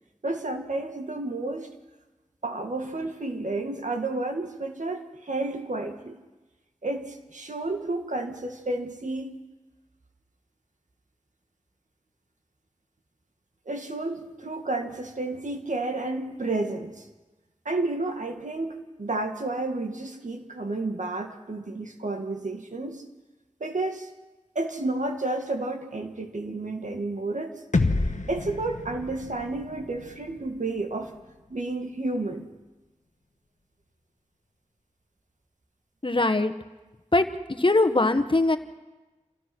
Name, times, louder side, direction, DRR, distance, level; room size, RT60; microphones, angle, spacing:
voice 1, 0.2-1.7 2.4-6.2 6.8-9.4 13.7-17.1 17.7-23.0 23.6-24.1 24.6-27.6 28.3-31.2 31.5-32.5, right 2 dB, 85° right, 4 dB, 1.9 m, -31 dB
sound 1, 27.7-31.7, left 3 dB, 80° left, 1.2 m, -30 dB
voice 2, 36.0-36.5 37.1-38.6, left 2 dB, 45° left, 7 dB, 1.3 m, -22 dB
27.5 x 15.5 x 6.2 m, 1.2 s
wide cardioid pair, 50°, 12 cm